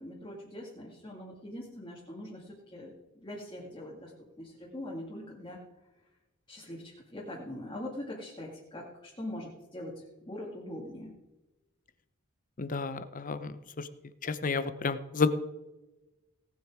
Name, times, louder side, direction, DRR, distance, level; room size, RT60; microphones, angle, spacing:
voice 1, 0.0-4.1 4.4-5.6 6.5-11.2, left 1 dB, 20° left, -4 dB, 2.1 m, -42 dB
voice 2, 12.6-13.9 14.2-15.3, left 4 dB, 40° left, 12 dB, 0.8 m, -31 dB
17.5 x 8.2 x 4.8 m, 1.1 s
head